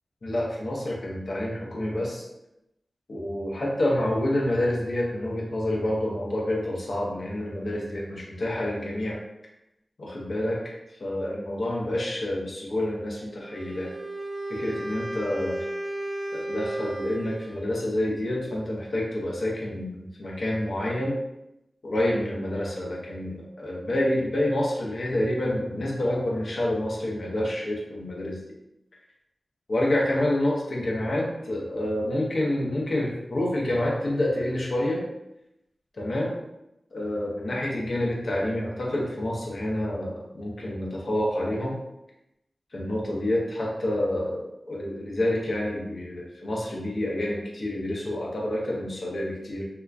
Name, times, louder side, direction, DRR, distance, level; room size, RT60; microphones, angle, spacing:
voice 1, 0.2-2.2 3.1-9.2 10.0-10.7 11.0-13.9 14.5-15.6 16.3-21.2 21.8-28.4 29.7-35.0 36.0-36.4 36.9-41.8 42.7-49.6, left 1 dB, 70° left, -3 dB, 0.8 m, -28 dB
Wind instrument woodwind instrument, 13.4-17.8, right 1 dB, 15° right, 0.4 m, -34 dB
3.4 x 2.9 x 2.4 m, 0.87 s
cardioid pair, 55°, 0 cm